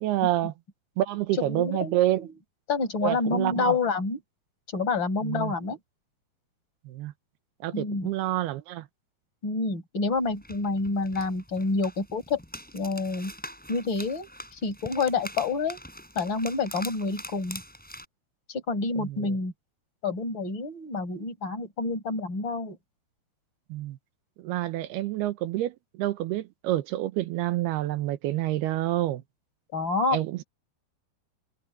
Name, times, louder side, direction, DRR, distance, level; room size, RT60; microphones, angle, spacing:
voice 1, 0.0-0.5 1.0-2.2 3.0-3.7 5.2-5.5 6.9-7.1 7.6-8.9 19.0-19.3 23.7-24.0 24.4-29.2 30.1-30.4, right 15 dB, 80° right, 2.9 m, -28 dB
voice 2, 1.4-2.3 2.7-4.2 4.7-5.8 7.7-8.1 9.4-12.4 12.7-13.3 13.7-15.8 16.2-17.6 18.5-19.5 20.0-22.8 29.7-30.2, left 3 dB, 30° left, 5.5 m, -28 dB
sound 1, 10.2-18.1, equal, ahead, 7.2 m, -43 dB
omnidirectional pair, 4.7 m